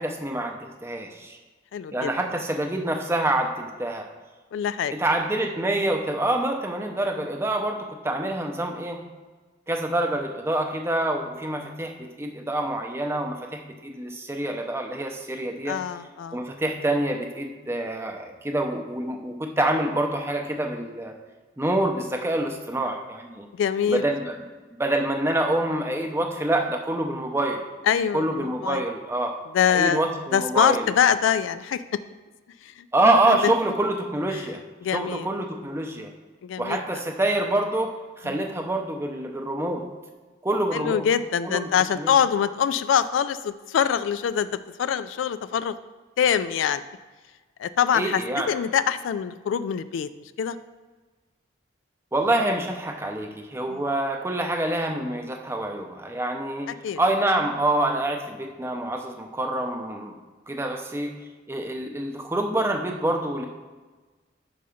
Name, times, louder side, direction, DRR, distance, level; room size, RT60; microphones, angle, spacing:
voice 1, 0.0-1.4 1.9-4.1 4.9-9.0 9.7-15.8 16.3-21.1 21.6-23.5 23.9-24.4 24.8-27.6 28.1-29.3 29.7-30.8 32.9-34.6 34.9-36.1 36.6-37.9 38.2-39.8 40.4-41.1 41.4-41.7 42.0-42.1 47.9-48.5 52.1-60.1 60.5-61.1 61.5-63.4, right 1 dB, 15° right, 3 dB, 0.5 m, -26 dB
voice 2, 1.7-2.1 4.5-4.9 7.1-7.3 15.7-16.4 23.5-24.0 27.9-28.8 29.5-30.0 30.3-31.8 32.6-32.9 33.3-33.5 34.3-34.4 34.8-35.3 36.4-36.8 38.2-38.4 40.7-44.5 44.8-45.7 46.2-46.8 47.6-48.2 48.5-50.1 50.4-50.6 53.7-53.8 56.7-57.0, left 8 dB, 90° left, 13 dB, 0.3 m, -24 dB
5.6 x 4.0 x 4.9 m, 1.3 s
head